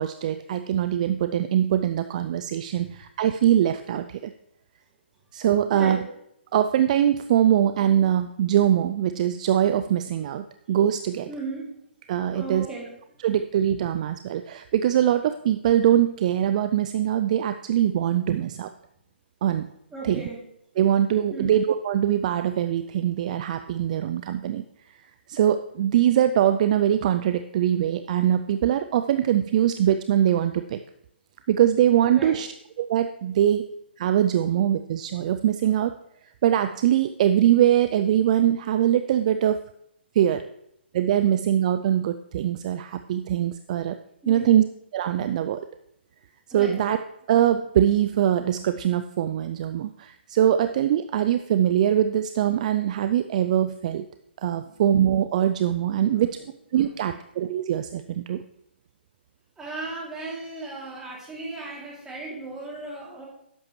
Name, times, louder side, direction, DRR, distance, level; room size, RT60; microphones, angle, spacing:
voice 1, 0.0-4.3 5.3-6.0 6.5-11.3 12.1-12.7 13.2-18.7 19.4-19.7 20.0-20.3 20.8-24.6 25.3-30.8 31.5-32.5 32.8-33.6 34.0-35.9 36.4-39.6 40.2-40.4 40.9-44.0 44.3-44.6 44.9-45.6 46.5-47.0 47.3-54.0 54.4-56.4 56.7-58.4, right 10 dB, 40° right, 10 dB, 0.3 m, -22 dB
voice 2, 5.7-6.0 11.3-11.7 12.3-13.0 19.9-20.4 21.3-21.6 32.1-32.4 44.2-44.6 46.5-46.8 54.7-54.8 55.9-56.3 56.8-57.1 59.6-63.3, right 3 dB, 10° right, -5 dB, 2.7 m, -36 dB
10.5 x 7.1 x 3.1 m, 0.77 s
figure-of-eight pair, 140°, 6 cm